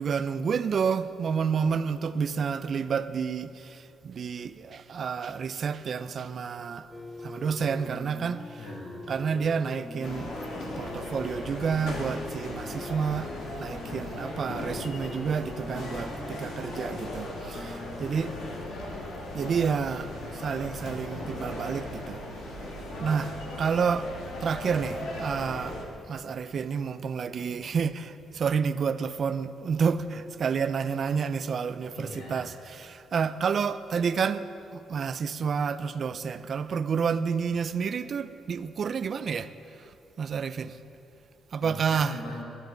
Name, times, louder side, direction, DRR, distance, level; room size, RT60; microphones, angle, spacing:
voice 1, 0.0-6.9 7.2-8.6 9.1-10.3 10.8-13.3 13.6-18.3 19.3-22.2 23.0-23.3 23.6-24.1 24.4-25.8 26.1-32.5 32.8-39.5 40.2-40.8 41.5-42.1, right 6 dB, 50° right, 0.5 m, -29 dB
sound 1, 6.9-18.7, left 2 dB, 15° left, 0.5 m, -43 dB
voice 2, 8.6-9.1 10.8-10.9 13.8-14.3 18.2-18.7 22.9-23.3 27.4-27.5 31.9-32.6 41.6-42.4, left 2 dB, 90° left, 2.1 m, -43 dB
sound 2, 10.0-25.8, left 1 dB, 75° left, 2.0 m, -38 dB
14.0 x 13.0 x 4.0 m
cardioid pair, 90°, 0 cm